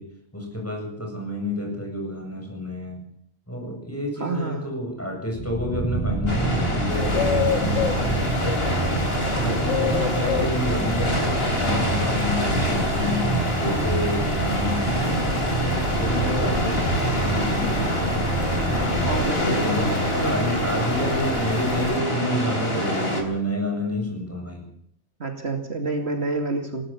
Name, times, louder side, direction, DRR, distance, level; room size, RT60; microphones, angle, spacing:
voice 1, 0.0-3.1 3.5-8.2 9.3-11.3 11.6-15.0 15.5-18.3 19.3-24.7, left 1 dB, 10° left, 1 dB, 7.9 m, -29 dB
voice 2, 4.2-4.7 19.1-20.6 25.2-26.8, right 2 dB, 60° right, 5 dB, 2.8 m, -28 dB
sound 1, 5.3-19.3, right 3 dB, 15° right, 7.7 m, -28 dB
sound 2, 6.3-23.2, left 1 dB, 55° left, 3.9 m, -26 dB
sound 3, 6.9-22.0, left 6 dB, 75° left, 2.2 m, -32 dB
21.0 x 18.5 x 7.3 m, 0.65 s
omnidirectional pair, 1.2 m